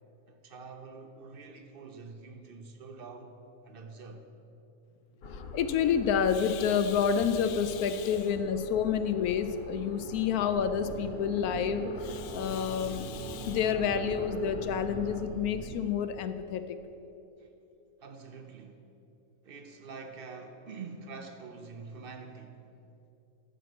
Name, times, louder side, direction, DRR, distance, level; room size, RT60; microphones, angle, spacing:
voice 1, 0.3-3.3 3.6-4.3 17.4-17.5 18.0-18.9 19.4-22.7, right 4 dB, 55° right, 0.6 m, -46 dB
sound 1, 5.2-15.2, left 1 dB, 50° left, 0.8 m, -43 dB
voice 2, 5.3-16.6, left 7 dB, 75° left, 1.0 m, -29 dB
sound 2, 10.8-15.9, right 7 dB, 75° right, 1.0 m, -43 dB
10.5 x 5.1 x 7.8 m
omnidirectional pair, 1.7 m